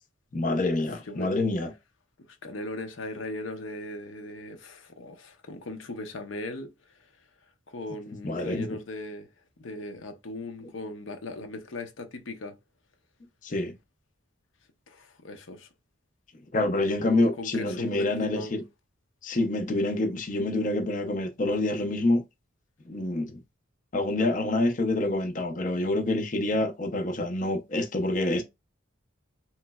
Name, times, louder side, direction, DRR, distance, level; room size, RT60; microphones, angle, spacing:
voice 1, 0.3-1.7 8.2-8.7 13.4-13.7 16.5-18.6 19.2-22.2 22.9-23.4 23.9-28.4, left 2 dB, 40° left, 0.5 m, -27 dB
voice 2, 2.3-7.1 7.7-9.3 9.6-12.6 14.9-15.7 17.1-18.5, left 2 dB, 80° left, 0.7 m, -38 dB
3.1 x 3.0 x 2.3 m
head